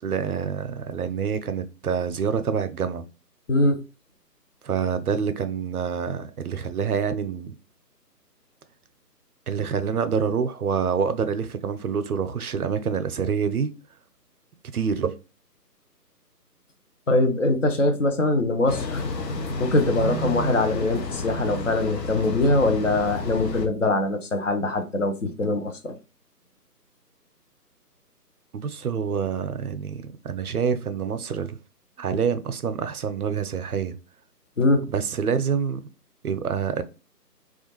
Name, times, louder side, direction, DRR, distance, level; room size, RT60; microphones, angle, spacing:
voice 1, 0.0-3.1 4.6-7.6 9.5-13.7 14.7-15.1 28.5-31.6 32.0-34.0 34.9-35.9 36.2-36.8, right 6 dB, 65° right, 0.5 m, -26 dB
voice 2, 3.5-3.8 17.1-19.0 19.6-26.0 34.6-34.8, left 2 dB, 50° left, 0.5 m, -22 dB
sound 1, 18.7-23.7, left 2 dB, 90° left, 0.7 m, -30 dB
2.4 x 2.2 x 2.9 m
figure-of-eight pair, 160°, 49 cm